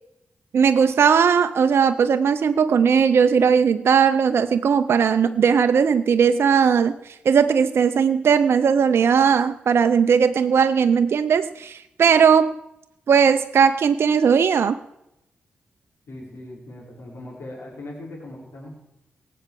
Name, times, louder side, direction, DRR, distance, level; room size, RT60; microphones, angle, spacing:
voice 1, 0.5-12.6 13.1-14.8, right 6 dB, 65° right, 9 dB, 0.7 m, -18 dB
voice 2, 16.1-18.7, left 1 dB, 65° left, -5 dB, 5.5 m, -39 dB
18.0 x 8.0 x 7.6 m, 0.86 s
supercardioid pair, 45°, 4 cm